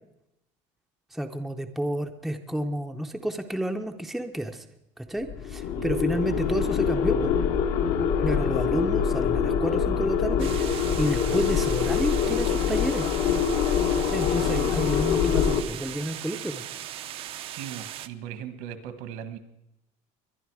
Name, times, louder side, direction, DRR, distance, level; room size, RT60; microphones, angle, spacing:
voice 1, 1.1-4.6 5.0-7.4 8.2-13.1 13.9-16.6, right 1 dB, ahead, 5 dB, 0.6 m, -30 dB
sound 1, 5.2-15.6, left 7 dB, 60° left, 1.1 m, -25 dB
voice 2, 5.7-6.4 17.5-19.4, right 9 dB, 70° right, 11 dB, 1.5 m, -39 dB
sound 2, 10.4-18.1, right 12 dB, 40° right, 0.6 m, -38 dB
22.0 x 10.5 x 4.8 m, 0.86 s
cardioid pair, 170°, 15 cm